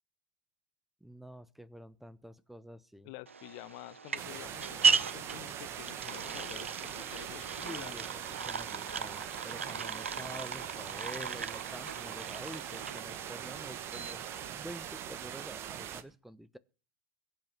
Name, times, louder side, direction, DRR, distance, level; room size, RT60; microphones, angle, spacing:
voice 1, 1.0-3.1 7.6-16.6, equal, 5° right, 1.1 m, -48 dB
voice 2, 3.0-8.0 9.6-9.8, left 20 dB, 50° left, 1.0 m, -49 dB
sound 1, 3.3-14.5, right 5 dB, 80° right, 0.7 m, -36 dB
sound 2, 4.2-16.0, right 10 dB, 40° right, 1.7 m, -42 dB
22.0 x 8.9 x 6.2 m
figure-of-eight pair, 80°, 7 cm